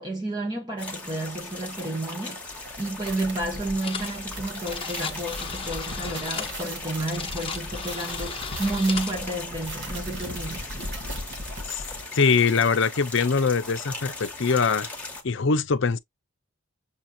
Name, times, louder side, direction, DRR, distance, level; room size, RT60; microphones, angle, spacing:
voice 1, 0.0-10.7, right 2 dB, 20° right, 1.0 m, -31 dB
sound 1, 0.8-15.2, left 3 dB, 5° left, 1.3 m, -39 dB
sound 2, 2.5-12.1, equal, 60° right, 1.7 m, -38 dB
Phone with a rotary dial, 3.8-4.2 4.4-9.2, left 6 dB, 25° left, 1.1 m, -35 dB
voice 2, 12.1-14.9 15.2-16.0, left 5 dB, 60° left, 0.6 m, -22 dB
7.1 x 2.9 x 2.3 m
head